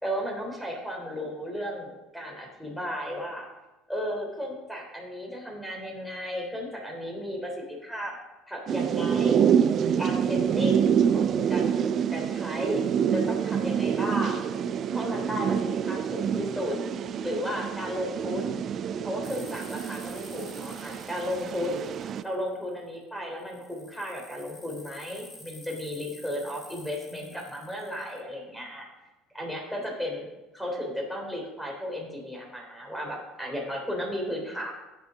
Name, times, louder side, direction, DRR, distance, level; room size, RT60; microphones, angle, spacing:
voice 1, 0.0-3.4 3.9-8.1 8.5-9.4 10.0-11.8 12.1-12.8 13.1-14.5 14.9-16.8 17.2-18.6 19.0-21.9 22.2-28.9 29.3-30.3 30.5-34.7, equal, 5° left, 0 dB, 3.2 m, -34 dB
sound 1, 8.7-22.2, right 8 dB, 40° right, 0.4 m, -27 dB
sound 2, 19.2-22.8 23.4-28.2, left 2 dB, 25° left, 2.8 m, -50 dB
8.3 x 7.7 x 5.2 m, 1.1 s
figure-of-eight pair, 60°, 0 cm